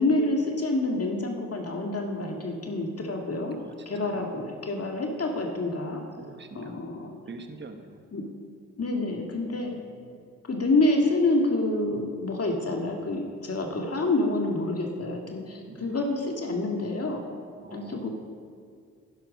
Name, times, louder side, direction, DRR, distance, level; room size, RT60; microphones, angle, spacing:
voice 1, 0.0-3.6 3.9-6.0 6.5-7.2 8.1-8.2 8.8-9.7 10.5-17.2 17.7-18.1, left 2 dB, 40° left, 1 dB, 1.9 m, -27 dB
voice 2, 3.5-4.2 6.2-7.0 7.3-8.0 9.6-10.2 15.7-16.0 17.6-18.1, right 3 dB, 30° right, 6 dB, 1.1 m, -45 dB
11.0 x 11.0 x 5.2 m, 2.1 s
hypercardioid pair, 45°, 36 cm